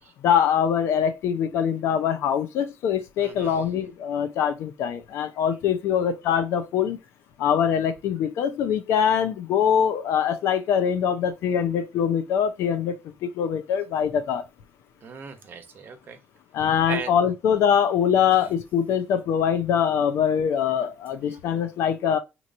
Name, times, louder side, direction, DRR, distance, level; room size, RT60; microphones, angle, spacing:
voice 1, 0.2-7.0 7.4-14.4 16.5-22.2, left 8 dB, 75° left, 0.6 m, -23 dB
voice 2, 3.2-3.6 15.0-16.2 16.9-17.1 18.3-18.4 21.3-21.4, right 6 dB, 50° right, 0.9 m, -37 dB
3.0 x 2.5 x 4.1 m
cardioid pair, 105°, 5 cm